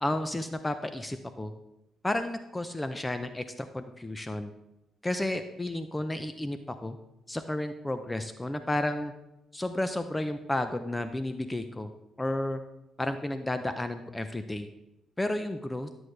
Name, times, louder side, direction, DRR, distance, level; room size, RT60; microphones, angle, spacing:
voice 1, 0.0-1.5 2.0-4.5 5.0-7.0 7.3-9.1 9.5-11.9 12.2-12.6 13.0-14.7 15.2-15.9, left 1 dB, 15° left, 9 dB, 0.6 m, -32 dB
12.5 x 7.8 x 3.3 m, 0.90 s
cardioid pair, 90°, 0 cm